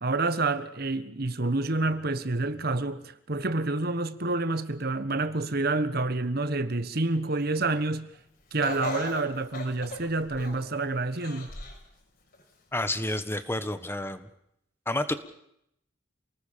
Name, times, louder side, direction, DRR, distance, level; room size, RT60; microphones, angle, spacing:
voice 1, 0.0-8.1 8.5-11.5, right 2 dB, 50° right, 1.4 m, -28 dB
Laughter, 8.6-10.7 11.2-11.8 12.3-12.4 13.4-13.5, left 2 dB, 50° left, 6.2 m, -37 dB
voice 2, 12.7-14.3 14.8-15.1, left 1 dB, 10° left, 1.5 m, -30 dB
29.0 x 19.5 x 6.9 m
head